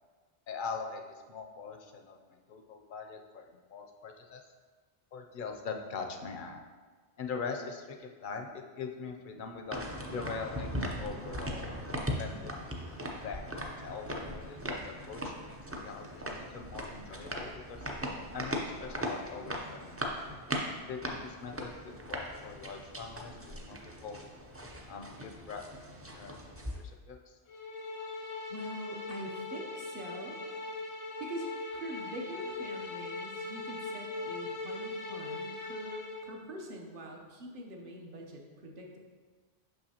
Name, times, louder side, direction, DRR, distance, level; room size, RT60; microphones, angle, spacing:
voice 1, 0.5-1.0 1.3-4.5 5.1-6.7 7.2-9.8 10.1-11.7 12.2-12.7 13.2-17.9 18.3-20.1 20.9-24.2 24.9-25.6 26.1-26.4 26.7-27.4, left 5 dB, 60° left, 4 dB, 0.6 m, -42 dB
sound 1, 9.7-26.8, equal, 20° right, 0.4 m, -39 dB
sound 2, 27.5-36.3, left 3 dB, 85° left, 1.1 m, -40 dB
voice 2, 28.5-30.4 31.2-39.0, equal, 55° right, 1 dB, 1.0 m, -44 dB
6.1 x 5.5 x 2.8 m, 1.4 s
omnidirectional pair, 1.1 m